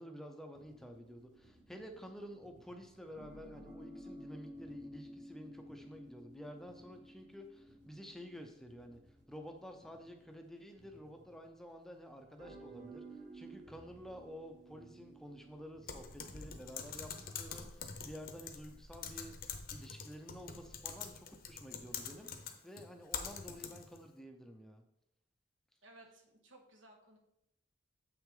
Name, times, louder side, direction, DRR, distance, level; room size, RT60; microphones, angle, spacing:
voice 1, 0.0-19.4 19.7-24.8, equal, ahead, 4 dB, 0.6 m, -51 dB
sound 1, 0.5-11.7 12.4-17.3, right 1 dB, 40° right, 1.5 m, -54 dB
Typing, 15.9-24.0, left 6 dB, 50° left, 0.8 m, -45 dB
voice 2, 25.8-27.2, right 1 dB, 80° right, 2 dB, 1.4 m, -59 dB
7.5 x 5.9 x 3.8 m, 0.80 s
head